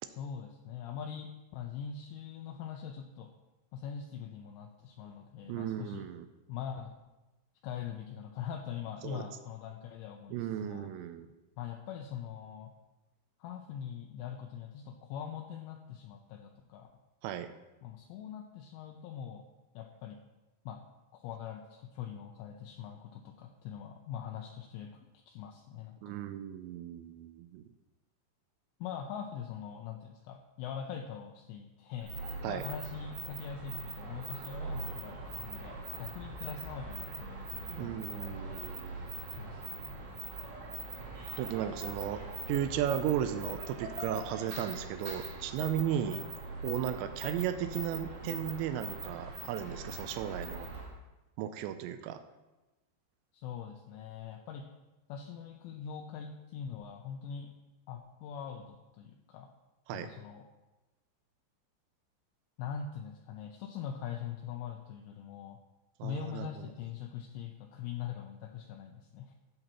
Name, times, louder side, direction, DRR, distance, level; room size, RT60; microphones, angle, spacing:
voice 1, 0.2-3.3 3.7-6.0 6.5-6.9 7.6-10.9 11.6-12.7 13.4-16.9 17.8-19.5 19.7-20.2 20.7-20.8 21.1-26.1 28.8-32.1 32.5-38.7 39.4-40.1 45.9-46.2 53.3-54.7 55.1-57.5 57.9-59.5 59.9-60.5 62.6-65.6 66.0-69.3, left 8 dB, 85° left, 2 dB, 2.6 m, -42 dB
voice 2, 5.5-6.3 9.0-9.3 10.3-11.3 17.2-17.5 26.0-27.6 32.4-32.6 37.7-39.1 41.4-42.2 42.5-46.2 46.6-50.7 51.4-52.2 59.9-60.1 66.0-66.7, right 11 dB, 85° right, 9 dB, 2.6 m, -35 dB
sound 1, 32.0-50.9, right 2 dB, 50° right, 4.0 m, -42 dB
13.5 x 7.8 x 3.0 m, 1.1 s
omnidirectional pair, 5.6 m